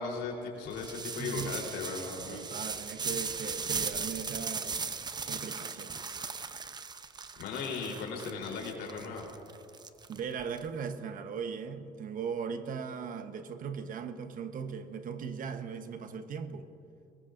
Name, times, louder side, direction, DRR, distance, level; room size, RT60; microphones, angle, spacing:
voice 1, 0.0-2.4 7.4-9.2, left 4 dB, 85° left, 3.7 m, -37 dB
sound 1, 0.7-10.6, right 5 dB, 25° right, 0.7 m, -38 dB
voice 2, 1.2-1.5 2.3-5.0 5.2-6.2 10.1-16.7, right 6 dB, 55° right, 1.1 m, -39 dB
24.0 x 21.0 x 2.6 m
cardioid pair, 110°, 17 cm